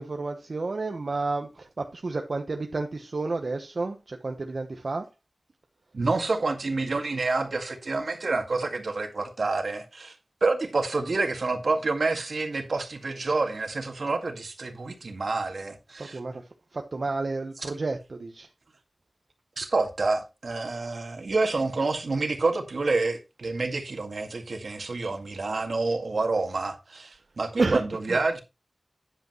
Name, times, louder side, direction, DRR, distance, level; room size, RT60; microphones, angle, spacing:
voice 1, 0.0-5.1 16.0-16.4 16.7-18.5 25.4-25.5 27.6-27.8 28.1-28.4, right 3 dB, 65° right, 1.0 m, -30 dB
voice 2, 5.9-10.2 10.4-16.2 19.6-28.4, right 3 dB, 85° right, 1.9 m, -28 dB
10.0 x 8.1 x 3.1 m
wide cardioid pair, 80°, 0 cm